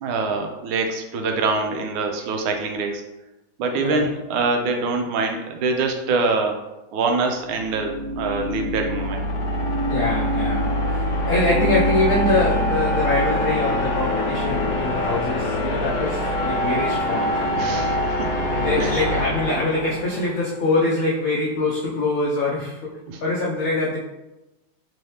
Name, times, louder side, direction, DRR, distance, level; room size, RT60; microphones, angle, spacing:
voice 1, 0.0-3.0 3.6-6.6 6.9-9.3 17.6-18.5 18.8-18.9 23.1-23.2, right 3 dB, 80° right, 3 dB, 1.4 m, -24 dB
sound 1, 7.3-20.4, equal, 70° left, 1.3 m, -24 dB
voice 2, 9.9-10.7 11.3-17.8 18.6-22.9 23.2-24.0, left 2 dB, 85° left, -4 dB, 0.7 m, -24 dB
3.6 x 2.7 x 3.2 m, 0.99 s
omnidirectional pair, 2.2 m